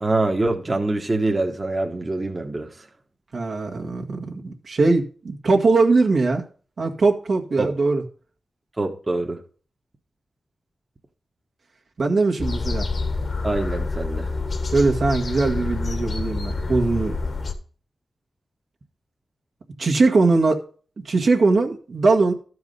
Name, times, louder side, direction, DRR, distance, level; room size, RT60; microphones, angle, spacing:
voice 1, 0.0-2.7 7.6-7.7 8.8-9.4 13.4-14.3, right 2 dB, 35° right, 1.2 m, -24 dB
voice 2, 3.3-6.4 6.8-8.0 12.0-12.9 14.7-17.2 19.8-20.6 21.0-22.3, right 3 dB, 70° right, 1.6 m, -20 dB
sound 1, 12.4-17.5, left 3 dB, 60° left, 1.5 m, -27 dB
12.5 x 4.8 x 5.3 m
cardioid pair, 60°, 0 cm